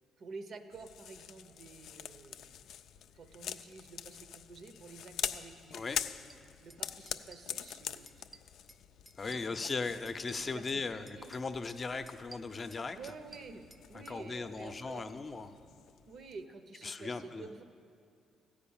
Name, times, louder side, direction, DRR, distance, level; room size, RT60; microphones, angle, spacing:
voice 1, 0.2-2.7 3.1-6.2 6.6-8.3 9.2-9.9 10.3-11.3 12.9-15.1 16.1-17.6, right 4 dB, 60° right, 8 dB, 0.8 m, -50 dB
sound 1, 0.7-16.5, left 9 dB, 75° left, 0.3 m, -45 dB
sound 2, 6.3-6.4 6.7-6.8 7.1-8.8 9.1-10.8 11.1-11.8 12.1-14.2, right 3 dB, 15° right, 0.4 m, -55 dB
voice 2, 9.2-13.1 14.1-15.5 16.8-17.5, left 4 dB, 35° left, 9 dB, 0.6 m, -38 dB
14.0 x 5.2 x 8.7 m, 2.5 s
cardioid pair, 90°, 0 cm